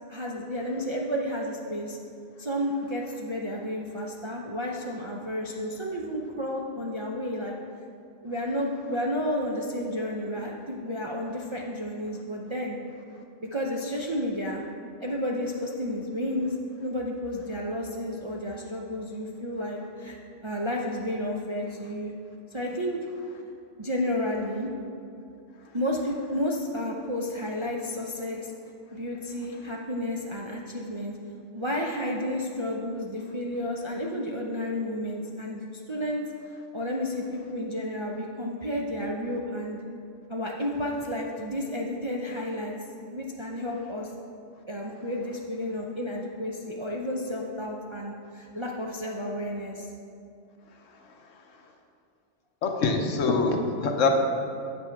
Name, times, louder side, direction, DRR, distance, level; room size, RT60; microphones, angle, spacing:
voice 1, 0.1-2.0 2.4-7.5 8.2-12.8 13.4-14.6 15.0-16.5 16.8-20.2 20.4-22.1 22.5-23.0 23.8-24.7 25.7-28.5 28.9-31.2 31.5-36.3 36.7-39.8 40.3-42.7 43.1-44.1 44.7-49.9, left 1 dB, 40° right, -2 dB, 0.4 m, -31 dB
voice 2, 52.6-54.1, left 4 dB, 85° left, 3 dB, 1.2 m, -24 dB
8.4 x 6.0 x 4.5 m, 2.5 s
omnidirectional pair, 1.3 m